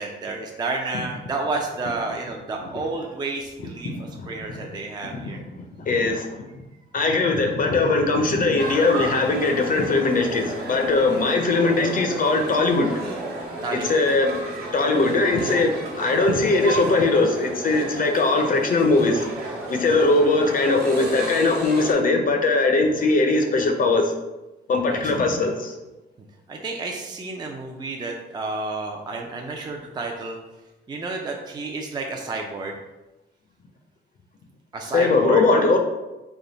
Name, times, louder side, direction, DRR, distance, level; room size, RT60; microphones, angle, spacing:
voice 1, 0.0-3.9 4.3-5.4 11.0-11.3 13.6-14.0 24.9-25.0 26.5-30.4 30.9-32.8 34.7-35.4, right 3 dB, 20° right, 1 dB, 0.4 m, -31 dB
voice 2, 3.8-4.6 5.0-5.4 5.8-6.3 6.9-13.0 13.7-14.3 14.7-19.3 19.7-24.1 24.7-25.7 34.9-35.8, left 3 dB, 45° left, 4 dB, 0.5 m, -20 dB
sound 1, 8.6-21.9, right 1 dB, 55° right, 1.0 m, -32 dB
3.4 x 2.2 x 3.9 m, 1.0 s
cardioid pair, 90°, 20 cm